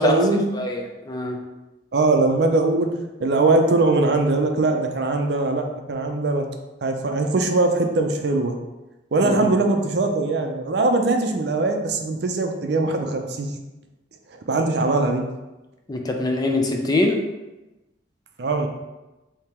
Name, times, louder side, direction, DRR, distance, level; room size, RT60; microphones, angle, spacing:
voice 1, 0.0-0.5 1.9-2.9 3.2-6.5 6.8-8.5 9.1-13.5 14.5-15.2 18.4-18.7, right 2 dB, 60° right, 4 dB, 0.5 m, -21 dB
voice 2, 0.5-1.4 9.2-9.7 15.9-17.2, left 2 dB, 20° left, 2 dB, 0.4 m, -24 dB
3.5 x 2.8 x 4.3 m, 1.0 s
head